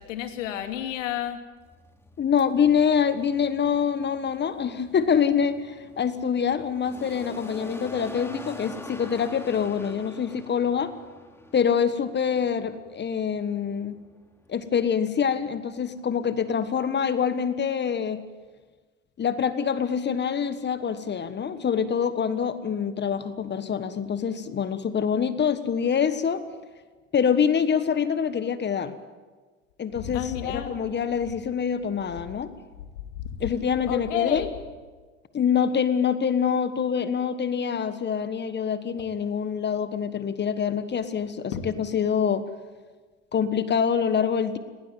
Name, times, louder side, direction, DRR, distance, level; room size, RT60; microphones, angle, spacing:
voice 1, 0.0-1.4 30.0-30.7 33.1-33.5 33.9-34.5 41.5-41.6, left 10 dB, 75° left, 7 dB, 2.7 m, -31 dB
sound 1, 1.6-16.0, left 1 dB, 5° left, 2.7 m, -45 dB
voice 2, 2.2-10.9 11.5-14.0 14.5-18.2 19.2-26.4 27.1-28.9 29.8-32.5 33.4-34.5 35.3-42.4 43.3-44.6, left 7 dB, 30° left, 12 dB, 1.4 m, -25 dB
19.5 x 18.5 x 9.1 m, 1.4 s
hypercardioid pair, 90°, 38 cm